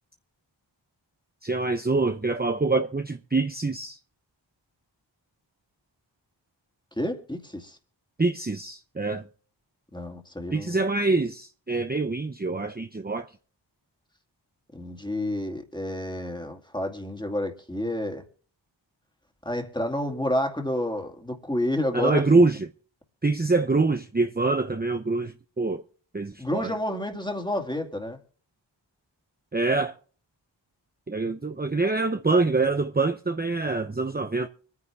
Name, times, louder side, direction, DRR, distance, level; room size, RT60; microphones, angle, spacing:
voice 1, 1.4-4.0 8.2-9.2 10.5-13.3 21.9-22.7 23.2-25.8 26.1-26.7 29.5-29.9 31.1-34.5, right 3 dB, 20° right, 0.8 m, -25 dB
voice 2, 7.0-7.8 9.9-10.8 14.7-18.2 19.5-22.4 26.4-28.2, left 1 dB, 10° left, 2.4 m, -30 dB
25.0 x 9.7 x 3.5 m
wide cardioid pair, 50°, 46 cm